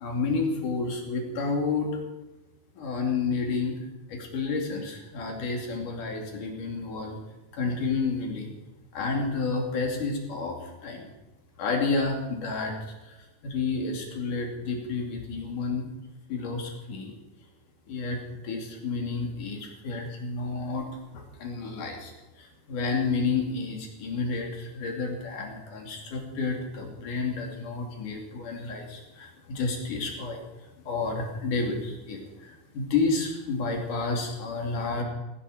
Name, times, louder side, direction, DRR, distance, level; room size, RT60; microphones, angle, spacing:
voice 1, 0.0-1.9 2.8-3.8 4.1-7.2 7.5-8.5 8.9-11.0 11.6-12.7 13.0-13.2 13.4-15.9 16.3-17.1 17.9-20.9 21.1-30.4 30.8-35.0, left 4 dB, 75° left, 1 dB, 4.3 m, -30 dB
17.0 x 17.0 x 5.0 m, 1.0 s
omnidirectional pair, 3.8 m